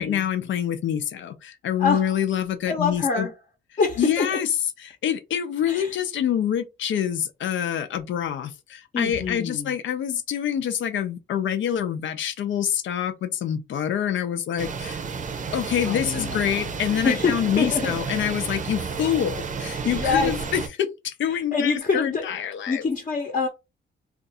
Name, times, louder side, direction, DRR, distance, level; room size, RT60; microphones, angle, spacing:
voice 1, 0.0-3.3 4.0-4.5 4.8-15.0 15.5-22.8, left 9 dB, 70° left, 0.6 m, -26 dB
voice 2, 2.7-3.3 3.8-4.4 5.7-5.9 8.9-9.7 15.9-16.6 17.0-18.0 19.8-20.3 21.3-22.2 22.7-23.5, left 4 dB, 40° left, 0.9 m, -25 dB
sound 1, 14.6-20.7, right 5 dB, 40° right, 0.6 m, -31 dB
2.6 x 2.4 x 4.0 m
cardioid pair, 125°, 20 cm